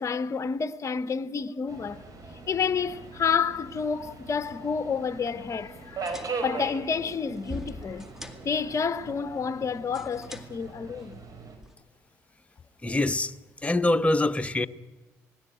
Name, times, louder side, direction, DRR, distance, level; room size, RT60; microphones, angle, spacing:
voice 1, 0.0-2.0 2.5-8.1 8.4-11.2, left 6 dB, 40° left, 0.8 m, -29 dB
Subway metro underground, 1.7-11.6, right 4 dB, 50° right, 4.9 m, -40 dB
sound 1, 5.8-11.8, left 2 dB, 5° right, 2.1 m, -46 dB
voice 2, 12.8-13.3 13.6-14.7, left 2 dB, 15° left, 1.0 m, -24 dB
19.5 x 16.0 x 9.0 m
hypercardioid pair, 60°, 8 cm